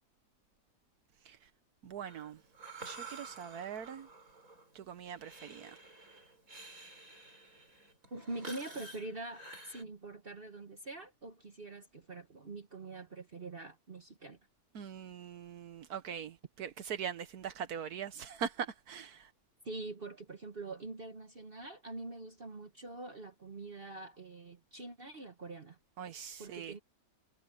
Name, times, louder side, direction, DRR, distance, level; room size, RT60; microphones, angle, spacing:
voice 1, 1.8-2.4 2.8-4.1 4.7-5.8 14.7-19.3 26.0-26.7, right 8 dB, 80° right, 1.5 m, -42 dB
Breathing, 2.0-9.8, right 3 dB, 65° right, 7.4 m, -51 dB
voice 2, 8.1-14.4 19.6-25.8 26.4-26.8, right 2 dB, 40° right, 1.4 m, -44 dB
omnidirectional pair, 1.6 m